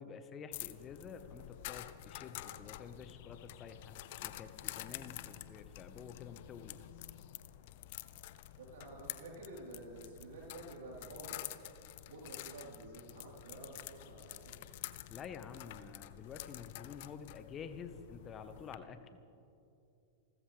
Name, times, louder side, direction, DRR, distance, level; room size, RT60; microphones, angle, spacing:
voice 1, 0.0-3.9 4.2-6.8 15.1-19.2, left 6 dB, 30° left, 9 dB, 1.3 m, -49 dB
sound 1, 0.5-18.7, left 15 dB, 55° left, 0.7 m, -49 dB
voice 2, 8.6-11.5 12.0-14.6, right 2 dB, 65° right, -3 dB, 4.1 m, -50 dB
29.0 x 14.0 x 3.5 m, 2.6 s
hypercardioid pair, 100°, 0 cm